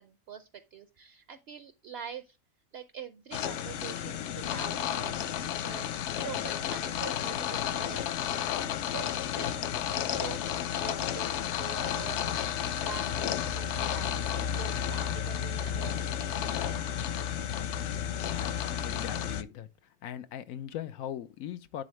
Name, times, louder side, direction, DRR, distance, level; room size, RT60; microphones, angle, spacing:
voice 1, 0.0-2.4 2.7-8.6 8.9-9.6 10.0-17.0, right 8 dB, 65° right, 0.7 m, -46 dB
sound 1, 3.3-19.4, left 9 dB, 65° left, 0.8 m, -32 dB
voice 2, 18.1-19.7 20.0-21.8, left 10 dB, 90° left, 1.1 m, -40 dB
10.5 x 3.8 x 3.2 m
omnidirectional pair, 1.4 m